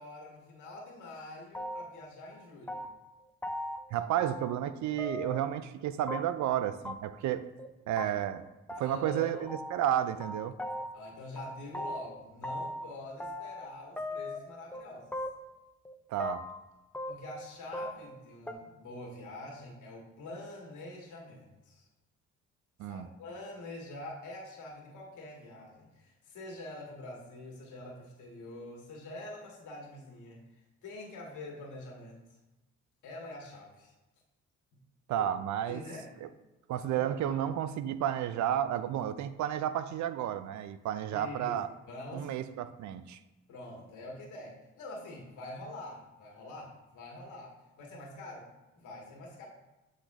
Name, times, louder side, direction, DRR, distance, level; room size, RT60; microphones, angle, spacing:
voice 1, 0.0-2.9 8.8-9.5 10.9-15.2 17.1-21.8 22.9-30.4 30.8-32.2 33.0-33.9 35.2-35.3 35.6-36.3 36.8-37.4 41.1-41.6 41.9-42.3 43.5-48.5 48.7-49.5, left 2 dB, 80° left, -1 dB, 1.8 m, -45 dB
sound 1, 1.5-2.1 2.3-3.1 3.4-3.8 4.2-4.7 5.0-5.5 6.1-6.5 6.9-7.0 7.2-7.3 7.6-7.7 8.0-8.1 8.3-8.4 8.7-9.9 10.2-11.1 11.4-12.9 13.2-13.7 14.0-14.8 15.1-15.6 15.9-16.6 16.9-18.2 18.5-18.6, left 1 dB, 5° left, 0.4 m, -39 dB
voice 2, 3.9-7.4 7.9-8.5 8.7-10.6 16.1-16.4 22.8-23.1 35.1-35.8 36.2-36.3 36.7-41.7 42.1-43.2, right 11 dB, 70° right, 13 dB, 0.4 m, -32 dB
8.1 x 4.0 x 3.0 m, 1.0 s
cardioid pair, 90°, 30 cm